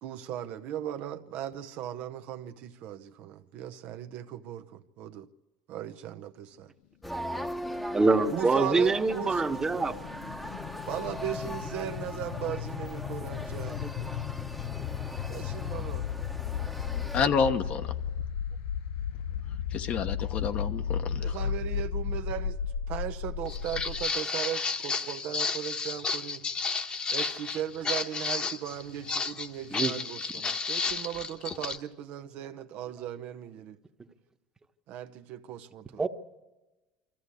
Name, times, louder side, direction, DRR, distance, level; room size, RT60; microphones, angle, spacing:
voice 1, 0.0-5.3 5.7-6.7 8.3-9.5 10.9-13.8 15.3-16.1 21.2-22.6 22.9-26.5 27.1-33.8 34.9-36.0, right 11 dB, 65° right, 0.8 m, -37 dB
sound 1, 7.0-17.2, equal, 5° left, 1.0 m, -39 dB
voice 2, 7.9-9.9 13.8-13.9 29.7-29.9 36.0-36.1, right 3 dB, 20° right, 1.2 m, -25 dB
sound 2, 8.3-24.1, left 8 dB, 75° left, 0.6 m, -35 dB
voice 3, 17.1-17.9 19.7-21.2, left 6 dB, 50° left, 1.1 m, -28 dB
Walk footsteps, 23.5-31.8, left 4 dB, 35° left, 1.2 m, -32 dB
23.5 x 14.5 x 8.3 m
supercardioid pair, 100°, 3 cm